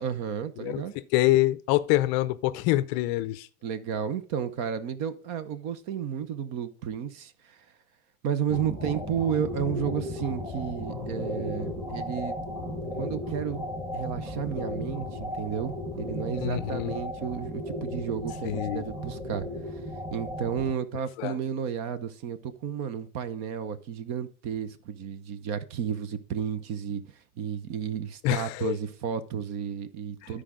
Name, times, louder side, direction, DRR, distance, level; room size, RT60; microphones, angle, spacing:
voice 1, 0.0-0.9 3.6-7.6 8.2-12.3 13.0-13.7 13.9-19.6 20.1-30.4, right 8 dB, 40° right, 0.9 m, -32 dB
voice 2, 1.1-3.5 16.4-17.0 18.4-18.8 21.2-21.4 28.2-28.8 30.2-30.4, left 16 dB, 35° left, 0.6 m, -26 dB
sound 1, 8.5-20.7, left 1 dB, 5° right, 1.5 m, -35 dB
12.5 x 4.9 x 3.8 m
supercardioid pair, 140°, 44 cm